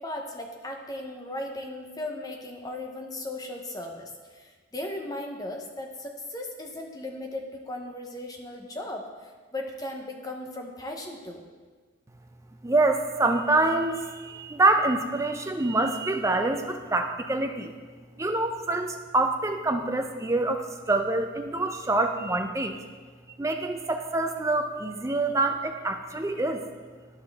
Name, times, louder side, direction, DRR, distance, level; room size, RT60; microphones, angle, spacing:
voice 1, 0.0-11.4, left 1 dB, 20° left, 2 dB, 0.7 m, -37 dB
voice 2, 12.6-17.7 18.2-22.8 23.4-26.6, right 2 dB, 15° right, 5 dB, 0.4 m, -26 dB
11.5 x 5.6 x 3.4 m, 1.4 s
head